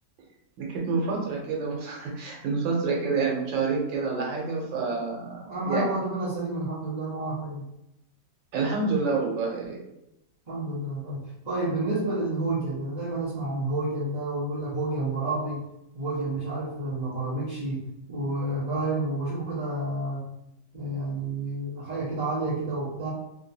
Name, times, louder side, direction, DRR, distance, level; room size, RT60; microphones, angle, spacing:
voice 1, 0.6-5.9 8.5-9.8, right 4 dB, 85° right, -2 dB, 1.6 m, -28 dB
voice 2, 5.4-7.6 10.5-15.6 15.9-20.2 20.7-23.1, right 2 dB, 25° right, -13 dB, 1.1 m, -30 dB
3.5 x 2.9 x 2.7 m, 0.87 s
omnidirectional pair, 2.0 m